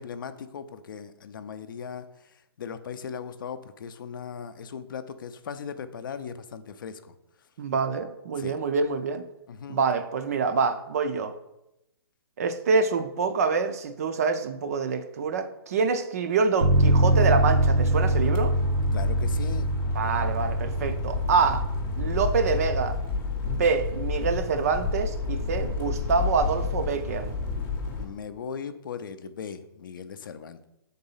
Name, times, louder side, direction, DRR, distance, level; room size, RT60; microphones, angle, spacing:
voice 1, 0.0-2.1 2.6-7.1 8.4-8.6 9.5-9.8 18.9-19.7 28.0-30.7, left 7 dB, 50° left, 0.5 m, -38 dB
voice 2, 7.6-9.2 9.7-11.3 12.4-18.6 19.9-21.6 22.0-23.0 23.4-27.3, right 5 dB, 35° right, 0.4 m, -26 dB
Bass guitar, 16.6-22.9, right 1 dB, 85° right, 0.7 m, -24 dB
sound 1, 16.7-28.1, left 4 dB, 15° left, 0.7 m, -31 dB
6.3 x 3.9 x 5.5 m
hypercardioid pair, 165°, 14 cm